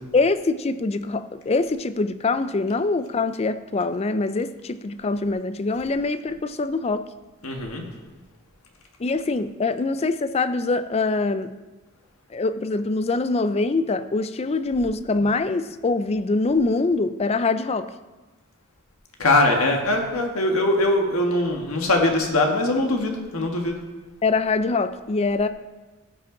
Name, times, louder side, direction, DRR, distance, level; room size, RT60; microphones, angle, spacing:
voice 1, 0.1-7.0 9.0-11.5 12.3-17.9 24.2-25.5, left 3 dB, 30° left, 12 dB, 0.4 m, -24 dB
voice 2, 7.4-7.8 19.2-23.8, left 2 dB, 75° left, 2 dB, 1.5 m, -21 dB
15.5 x 5.9 x 3.8 m, 1.2 s
head